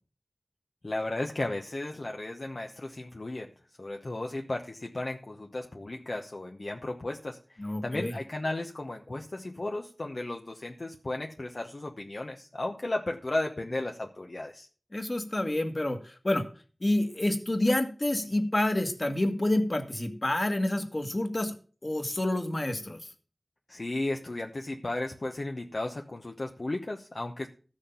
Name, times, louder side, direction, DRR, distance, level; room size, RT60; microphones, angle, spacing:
voice 1, 0.8-3.5 3.8-14.7 23.7-27.5, left 2 dB, 65° left, 2 dB, 1.0 m, -34 dB
voice 2, 7.6-8.1 14.9-16.4 16.8-21.5 21.8-23.0, left 1 dB, 45° left, 6 dB, 1.8 m, -28 dB
14.0 x 6.5 x 5.6 m, 0.39 s
wide cardioid pair, 45°, 0 cm